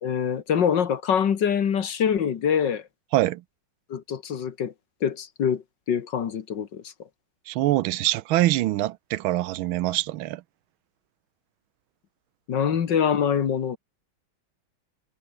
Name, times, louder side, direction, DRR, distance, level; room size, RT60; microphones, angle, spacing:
voice 1, 0.0-2.8 3.9-4.7 5.0-6.9 12.5-13.8, left 7 dB, 65° left, 2.1 m, -24 dB
voice 2, 7.5-10.4, right 15 dB, 85° right, 1.5 m, -24 dB
omnidirectional pair, 2.2 m